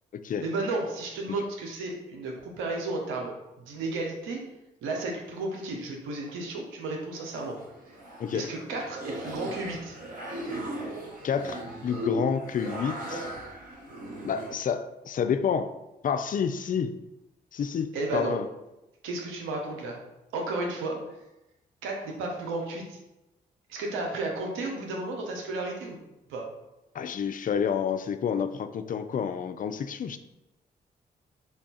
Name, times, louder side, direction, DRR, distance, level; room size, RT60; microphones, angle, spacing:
voice 1, 0.4-3.4 3.7-4.4 4.8-7.6 8.3-9.9 17.9-18.4 19.0-20.0 20.3-21.0 21.8-23.0 23.7-26.0 26.3-26.4, right 2 dB, 85° right, 1 dB, 0.7 m, -33 dB
sound 1, 7.2-14.5, equal, 40° right, 1.4 m, -37 dB
voice 2, 11.2-13.3 14.2-15.7 16.0-16.9 17.5-18.5 26.9-30.2, left 7 dB, 45° left, 9 dB, 0.4 m, -29 dB
3.5 x 2.3 x 4.0 m, 0.95 s
hypercardioid pair, 45°, 20 cm